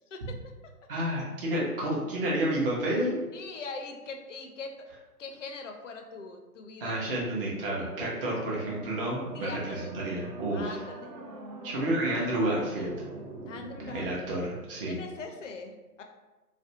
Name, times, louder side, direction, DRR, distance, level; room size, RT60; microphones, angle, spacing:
voice 1, 0.9-3.2 6.8-10.8 11.6-13.0 13.9-15.0, right 1 dB, 35° right, -4 dB, 0.6 m, -30 dB
voice 2, 3.3-4.7 5.2-7.0 8.3-8.4 9.3-9.9 10.5-11.2 13.5-14.1 14.9-16.0, left 3 dB, 55° left, 4 dB, 0.5 m, -41 dB
sound 1, 7.7-14.2, right 2 dB, 85° right, 0.6 m, -43 dB
2.4 x 2.1 x 2.7 m, 1.1 s
figure-of-eight pair, 140°, 48 cm